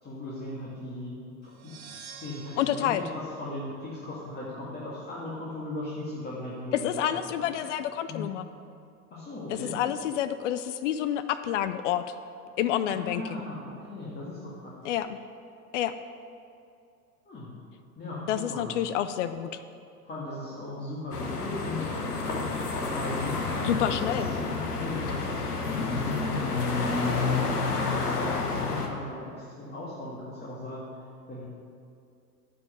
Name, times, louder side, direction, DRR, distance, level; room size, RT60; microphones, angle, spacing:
voice 1, 0.0-1.7 2.2-7.0 7.4-7.5 8.1-8.3 9.1-9.7 12.9-14.7 17.3-17.5 18.0-18.7 20.1-21.9 22.9-24.1 24.7-27.1 27.4-30.8 31.3-31.4, left 2 dB, 20° left, -6 dB, 2.0 m, -38 dB
sound 1, 1.4-4.3, right 6 dB, 65° right, 1.4 m, -49 dB
voice 2, 2.6-3.0 6.7-8.5 9.5-12.1 12.6-13.4 14.8-15.2 15.7-16.0 18.3-19.6 23.6-24.3, left 11 dB, 55° left, 12 dB, 0.5 m, -28 dB
sound 2, 21.1-28.9, left 3 dB, 80° left, 1.2 m, -29 dB
10.5 x 5.4 x 6.5 m, 2.5 s
figure-of-eight pair, 85°, 45 cm